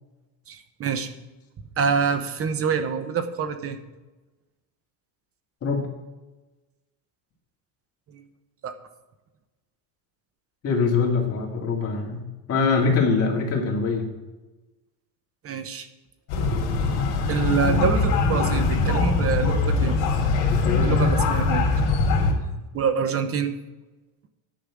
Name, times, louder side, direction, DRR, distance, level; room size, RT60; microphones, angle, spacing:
voice 1, 0.5-1.1 1.8-3.8 8.1-8.2 8.6-8.7 15.4-15.9 17.3-20.0 20.8-21.6 22.7-23.5, right 6 dB, 35° right, 10 dB, 0.9 m, -26 dB
voice 2, 10.6-14.1 20.5-21.0, left 4 dB, 35° left, 0 dB, 2.5 m, -23 dB
sound 1, 16.3-22.3, left 3 dB, 65° left, 2.6 m, -22 dB
10.0 x 5.5 x 8.5 m, 1.1 s
cardioid pair, 140°, 42 cm